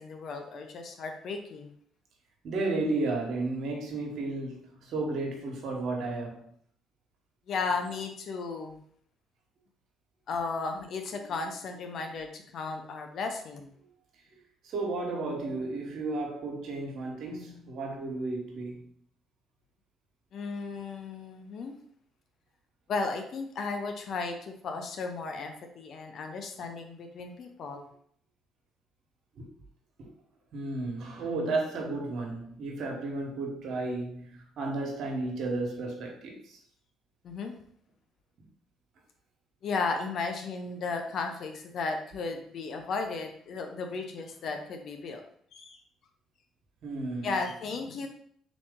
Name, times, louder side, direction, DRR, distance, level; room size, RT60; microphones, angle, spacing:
voice 1, 0.0-1.7 7.5-8.8 10.3-13.7 20.3-21.8 22.9-27.9 37.2-37.5 39.6-45.2 45.5-45.8 47.2-48.1, left 4 dB, 60° left, 0.7 m, -35 dB
voice 2, 2.4-6.5 14.6-18.9 29.4-29.5 30.0-30.1 30.5-36.6 46.8-47.3, right 2 dB, 65° right, 1.2 m, -33 dB
3.9 x 3.0 x 3.7 m
supercardioid pair, 70°, 0 cm